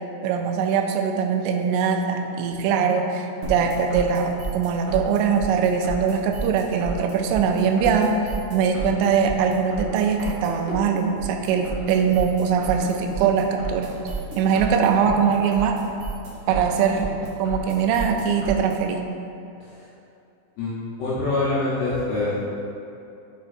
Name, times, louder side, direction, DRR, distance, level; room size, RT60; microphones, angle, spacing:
voice 1, 0.2-8.2 8.5-13.9 14.4-15.8 16.5-17.1 17.4-19.0, right 6 dB, 85° right, 4 dB, 2.9 m, -22 dB
sound 1, 3.4-18.7, right 3 dB, 65° right, 2.0 m, -32 dB
voice 2, 20.6-22.3, left 2 dB, 75° left, -10 dB, 2.6 m, -25 dB
8.2 x 5.2 x 2.5 m, 2.7 s
omnidirectional pair, 5.6 m